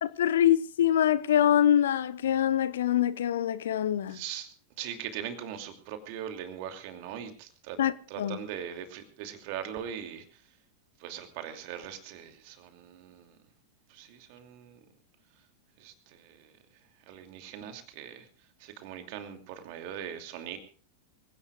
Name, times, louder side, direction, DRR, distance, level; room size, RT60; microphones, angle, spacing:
voice 1, 0.0-4.2 7.8-8.4, left 10 dB, 60° left, 0.8 m, -25 dB
voice 2, 4.1-4.5 4.8-7.8 8.1-10.4 11.0-13.4 13.9-14.8 15.8-16.5 17.1-18.3 18.6-20.6, right 9 dB, 45° right, 2.7 m, -40 dB
25.5 x 17.0 x 2.4 m
figure-of-eight pair, 90°, 0 cm